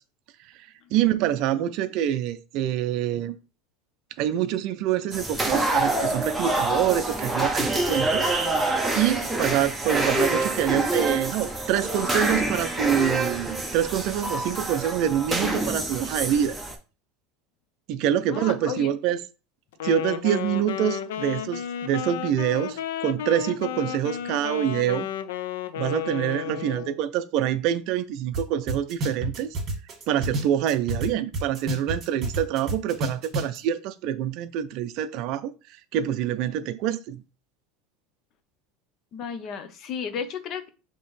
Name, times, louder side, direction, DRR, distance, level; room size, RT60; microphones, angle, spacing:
voice 1, 0.9-3.3 4.2-16.6 17.9-19.2 19.8-25.1 25.8-29.5 30.1-35.5 35.9-37.2, right 11 dB, 55° right, 0.4 m, -26 dB
sound 1, 5.1-16.8, right 2 dB, 5° right, 0.7 m, -26 dB
voice 2, 18.3-18.9 39.1-40.7, left 7 dB, 40° left, 0.6 m, -33 dB
Wind instrument woodwind instrument, 19.7-27.0, left 10 dB, 90° left, 0.4 m, -32 dB
sound 2, 28.3-28.4 28.7-31.1 31.3-33.6, right 1 dB, 30° right, 1.7 m, -29 dB
5.3 x 2.9 x 3.2 m
supercardioid pair, 140°, 0 cm